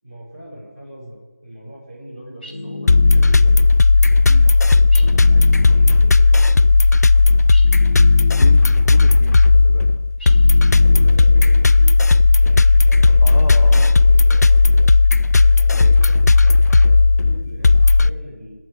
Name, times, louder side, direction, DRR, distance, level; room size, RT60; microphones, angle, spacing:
voice 1, 0.0-1.2 1.4-3.6 4.0-6.6 10.7-14.9 15.3-18.5, equal, 20° right, -10 dB, 5.1 m, -39 dB
sound 1, 2.4-3.8 4.9-6.3 7.5-8.9 10.2-11.6, left 2 dB, 35° left, 1.7 m, -33 dB
sound 2, 2.9-18.1, left 3 dB, 85° left, 0.4 m, -13 dB
voice 2, 8.2-10.0 10.9-11.5 13.2-14.0 15.7-16.0, left 1 dB, 60° left, 2 dB, 1.3 m, -33 dB
18.5 x 6.4 x 7.7 m, 1.4 s
figure-of-eight pair, 180°, 9 cm